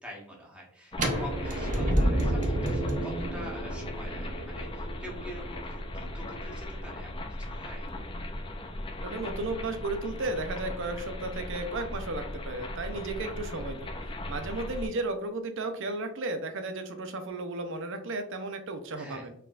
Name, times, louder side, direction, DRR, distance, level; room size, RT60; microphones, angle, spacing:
voice 1, 0.0-7.9 18.9-19.3, equal, 5° right, -4 dB, 1.2 m, -45 dB
sound 1, 0.9-14.9, left 1 dB, 25° left, 0.5 m, -38 dB
sound 2, 0.9-6.8, right 1 dB, 35° right, 0.9 m, -30 dB
voice 2, 9.0-13.9 14.3-19.3, right 2 dB, 60° right, 7 dB, 0.6 m, -34 dB
4.5 x 3.6 x 2.5 m, 0.68 s
head